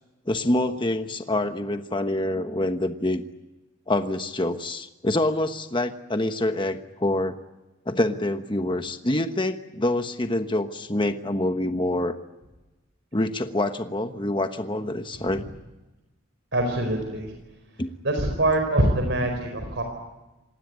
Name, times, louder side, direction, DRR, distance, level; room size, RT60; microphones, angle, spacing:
voice 1, 0.3-3.2 3.9-7.4 7.9-12.1 13.1-15.4 17.8-17.9, left 1 dB, 25° left, 8 dB, 1.2 m, -26 dB
voice 2, 16.5-17.3 18.0-19.8, right 1 dB, 65° right, 4 dB, 4.7 m, -24 dB
27.0 x 20.0 x 9.6 m, 1.1 s
head